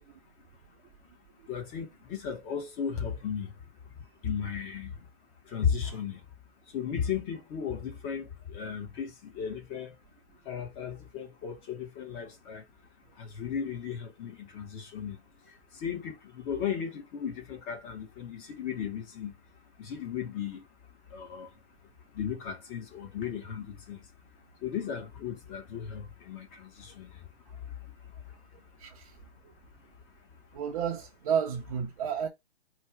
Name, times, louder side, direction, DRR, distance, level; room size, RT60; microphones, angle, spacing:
voice 1, 1.5-3.5 4.2-4.9 5.5-6.2 6.7-9.9 10.5-12.6 13.2-15.2 15.7-19.3 19.8-20.6 21.1-21.5 22.2-24.0 24.6-27.1, left 7 dB, 20° left, 1.0 m, -35 dB
voice 2, 28.8-29.2 29.4-29.5 30.5-32.3, right 7 dB, 35° right, 0.7 m, -32 dB
4.4 x 2.3 x 4.5 m
hypercardioid pair, 150°, 32 cm